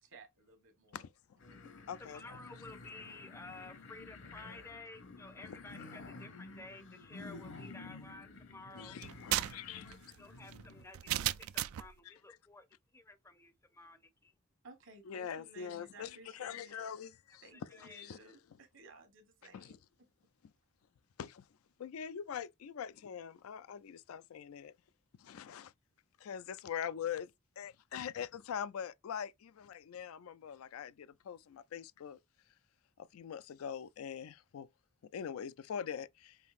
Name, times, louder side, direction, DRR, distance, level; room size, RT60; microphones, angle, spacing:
voice 1, 0.0-1.0 1.5-1.7 9.5-9.6 14.6-16.8 17.4-19.8, right 2 dB, 65° right, 1.2 m, -57 dB
voice 2, 0.9-1.4 1.9-2.4 5.4-5.6 8.8-10.0 12.0-12.1 15.1-16.1 16.4-18.2 19.5-19.8 21.2-21.5 21.8-24.7 25.2-25.7 26.2-27.3 27.6-32.2 33.0-34.7 35.0-36.4, left 8 dB, 90° left, 0.4 m, -43 dB
sound 1, 1.4-10.8, left 3 dB, 60° left, 0.8 m, -51 dB
voice 3, 2.0-9.0 9.3-11.1 11.4-12.7 12.9-14.3 17.5-18.0, left 2 dB, 15° left, 0.5 m, -53 dB
sound 2, 9.0-11.9, right 14 dB, 80° right, 0.3 m, -36 dB
5.5 x 2.6 x 2.4 m
head